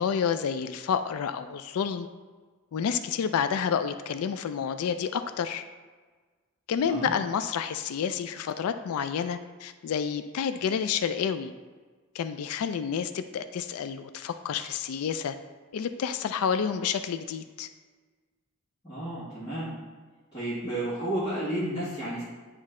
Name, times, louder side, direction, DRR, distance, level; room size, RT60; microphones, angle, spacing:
voice 1, 0.0-2.1 2.7-5.6 6.7-11.5 12.1-15.3 15.7-17.7, left 7 dB, 90° left, 10 dB, 0.3 m, -29 dB
voice 2, 18.8-19.7 20.3-22.2, right 1 dB, 20° left, -13 dB, 1.8 m, -32 dB
9.4 x 3.2 x 3.7 m, 1.4 s
head